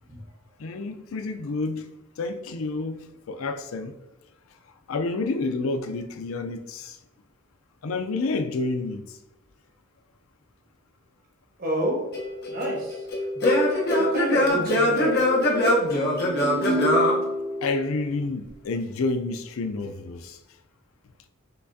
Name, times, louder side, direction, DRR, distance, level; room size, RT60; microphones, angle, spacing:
voice 1, 0.6-1.9 2.2-3.9 4.9-7.0 7.8-9.2 17.6-20.4, left 3 dB, 90° left, 0.5 m, -29 dB
voice 2, 11.6-12.0 12.5-13.0 14.0-15.1, right 1 dB, 45° right, 1.2 m, -29 dB
Singing / Plucked string instrument, 12.1-18.0, left 1 dB, 50° left, 1.0 m, -23 dB
5.9 x 3.2 x 2.6 m
head